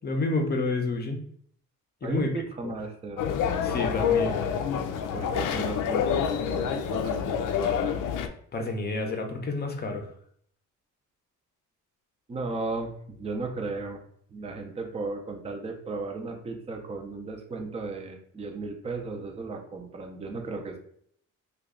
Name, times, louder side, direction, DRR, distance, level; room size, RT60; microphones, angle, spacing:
voice 1, 0.0-1.2 2.0-2.3 2.6-2.7 3.6-4.4 8.5-10.1, left 2 dB, 30° left, 4 dB, 0.6 m, -29 dB
voice 2, 2.0-3.2 5.0-7.9 12.3-14.0 14.3-20.8, right 3 dB, 20° right, 3 dB, 0.5 m, -35 dB
sound 1, 3.2-8.3, left 7 dB, 80° left, 0.5 m, -27 dB
3.1 x 2.3 x 3.6 m, 0.64 s
cardioid pair, 115°, 31 cm